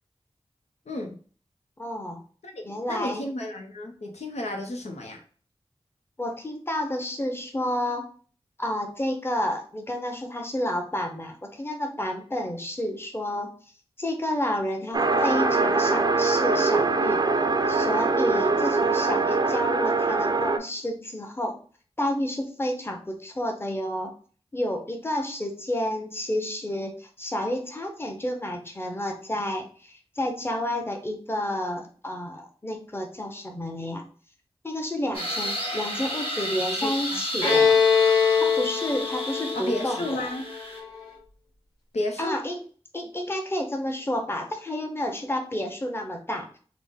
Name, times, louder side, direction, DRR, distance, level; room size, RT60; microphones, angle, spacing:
voice 1, 0.9-1.2 2.4-5.2 36.8-37.2 39.5-40.4 41.9-42.4, left 1 dB, 85° left, 2 dB, 0.7 m, -32 dB
voice 2, 1.8-2.2 2.6-3.3 6.2-8.0 8.6-13.5 14.0-17.2 17.7-21.6 22.0-24.1 24.5-34.0 34.6-37.8 38.4-40.3 42.2-42.6 42.9-46.6, left 1 dB, 20° left, 3 dB, 0.8 m, -30 dB
sound 1, 14.9-20.6, right 3 dB, 40° right, 0.4 m, -23 dB
sound 2, 35.1-40.8, equal, 60° left, 1.2 m, -32 dB
Bowed string instrument, 37.4-41.0, left 6 dB, 40° left, 1.4 m, -22 dB
3.9 x 2.1 x 3.5 m, 0.42 s
wide cardioid pair, 55°, 11 cm